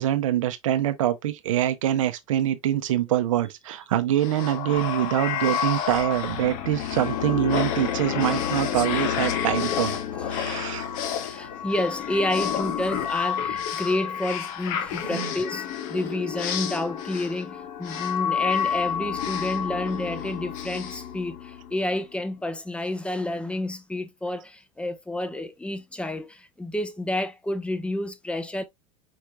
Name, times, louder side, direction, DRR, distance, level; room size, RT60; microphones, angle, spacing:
voice 1, 0.0-10.0 10.3-10.9 15.1-15.3, right 12 dB, 80° right, 0.8 m, -25 dB
sound 1, 4.2-21.8, left 8 dB, 55° left, 1.2 m, -29 dB
voice 2, 10.1-10.7 11.2-28.6, left 1 dB, 5° left, 0.9 m, -30 dB
4.9 x 4.4 x 2.3 m
hypercardioid pair, 95°, 17 cm